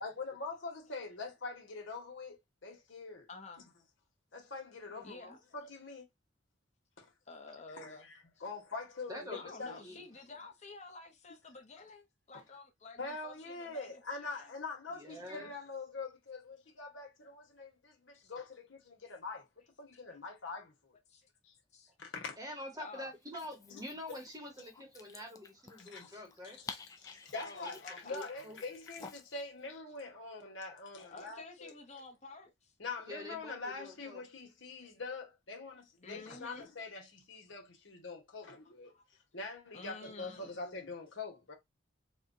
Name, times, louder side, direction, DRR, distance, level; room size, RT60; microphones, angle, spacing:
voice 1, 0.0-3.3 4.3-6.1 7.0-7.1 7.7-9.8 12.3-12.4 13.0-19.5 19.8-20.9 21.4-21.5 22.0-22.4 25.8-26.1 26.4-31.7 32.8-38.9 39.3-41.5, left 3 dB, 90° left, 1.3 m, -44 dB
voice 2, 3.3-3.6 5.0-5.4 7.3-8.1 9.3-14.5 17.2-17.3 18.1-18.3 20.1-20.2 21.1-21.2 21.7-21.9 22.8-23.1 26.1-26.2 27.4-28.2 31.1-32.7 36.0-36.7 38.9-39.0 39.7-40.5, left 3 dB, 35° left, 0.8 m, -51 dB
voice 3, 4.9-5.4 9.1-10.1 14.9-15.5 22.4-26.6 28.1-28.6 33.1-34.2, left 1 dB, 20° right, 1.0 m, -46 dB
Dog, 23.2-29.4, left 4 dB, 20° left, 0.3 m, -52 dB
4.3 x 2.3 x 2.7 m
head